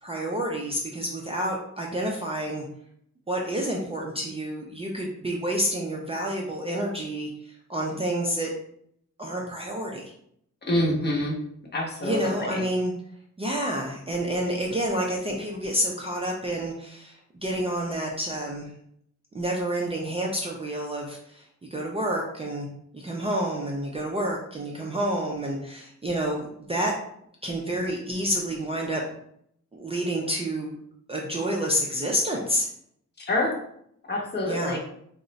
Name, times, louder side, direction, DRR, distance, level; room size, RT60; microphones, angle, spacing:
voice 1, 0.0-2.7 3.3-7.3 7.7-8.5 9.2-10.0 12.0-12.9 13.4-18.7 19.3-21.4 21.7-22.7 22.9-26.9 27.4-29.0 29.7-30.8 31.1-32.7 34.4-34.8, equal, 20° right, -2 dB, 0.3 m, -29 dB
voice 2, 10.7-11.3 11.7-12.6 33.3-33.5 34.1-34.8, left 1 dB, 35° left, -1 dB, 0.7 m, -26 dB
2.4 x 2.0 x 3.8 m, 0.70 s
wide cardioid pair, 150°, 29 cm